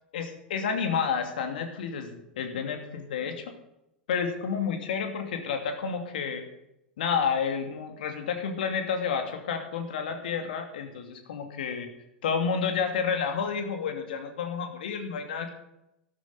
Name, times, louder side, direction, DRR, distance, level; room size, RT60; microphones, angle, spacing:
voice 1, 0.1-3.6 4.1-6.5 7.0-11.9 12.2-15.5, left 6 dB, 65° left, 5 dB, 2.5 m, -30 dB
13.0 x 12.5 x 5.4 m, 0.84 s
figure-of-eight pair, 90°, 5 cm